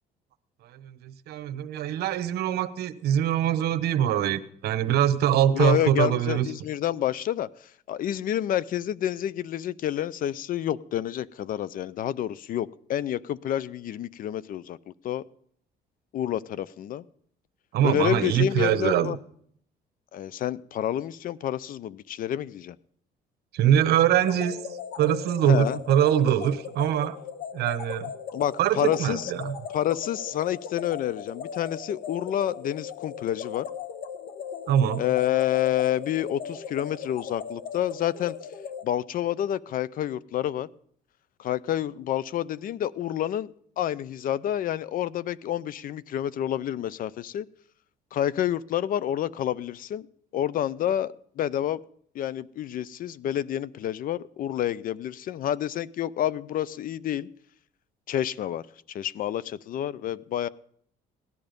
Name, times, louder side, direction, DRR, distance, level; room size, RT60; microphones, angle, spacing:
voice 1, 0.6-6.5 17.7-19.2 23.5-24.6 25.0-27.2 27.5-28.1 28.6-29.6 34.7-35.0, right 10 dB, 70° right, 12 dB, 1.0 m, -23 dB
voice 2, 5.5-7.5 7.9-15.2 16.1-17.0 17.8-19.2 20.1-22.8 25.4-25.8 28.3-29.3 29.7-33.7 35.0-38.4 38.8-40.7 41.4-47.5 48.1-50.1 50.3-51.8 52.1-57.3 58.1-58.6 58.9-60.5, left 11 dB, 55° left, 19 dB, 0.5 m, -28 dB
sound 1, 24.2-38.8, left 7 dB, 85° left, 1.1 m, -38 dB
17.0 x 11.0 x 5.2 m, 0.65 s
cardioid pair, 110°, 17 cm